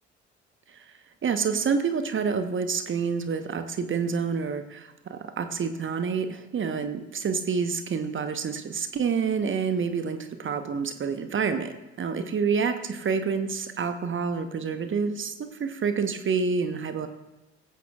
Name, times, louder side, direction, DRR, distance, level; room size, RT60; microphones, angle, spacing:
voice 1, 1.2-17.1, right 5 dB, 35° right, 9 dB, 1.1 m, -28 dB
18.0 x 15.5 x 2.5 m, 1.0 s
figure-of-eight pair, 45°, 33 cm